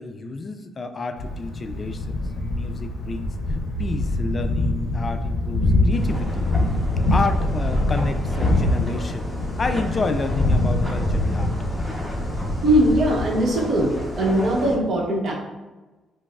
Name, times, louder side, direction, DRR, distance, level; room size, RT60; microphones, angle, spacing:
voice 1, 0.0-3.3 3.8-6.4 7.1-11.5, left 3 dB, 35° left, 8 dB, 0.3 m, -30 dB
Thunder, 1.2-14.5, left 2 dB, 80° left, 0.6 m, -24 dB
sound 1, 5.9-14.8, equal, 10° right, 0.8 m, -33 dB
voice 2, 12.6-15.3, right 1 dB, 60° right, -2 dB, 0.9 m, -20 dB
4.5 x 2.0 x 2.3 m, 1.2 s
cardioid pair, 90°, 0 cm